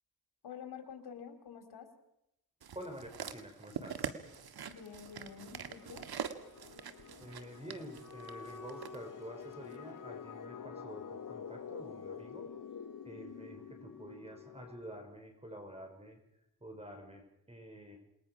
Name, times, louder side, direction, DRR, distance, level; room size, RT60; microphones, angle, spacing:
voice 1, 0.4-1.9 4.7-6.1, left 7 dB, 80° left, 5 dB, 4.0 m, -48 dB
sound 1, 2.6-9.0 9.7-9.8, right 8 dB, 70° right, 1.9 m, -44 dB
voice 2, 2.7-4.1 7.2-12.5 13.0-16.2 16.6-18.0, equal, 15° right, 4 dB, 5.7 m, -49 dB
sound 2, 4.2-14.7, left 6 dB, 55° left, 1.8 m, -49 dB
Wind instrument woodwind instrument, 7.8-14.9, left 6 dB, 5° left, 3.7 m, -54 dB
28.5 x 21.0 x 6.2 m, 0.83 s
cardioid pair, 85°, 38 cm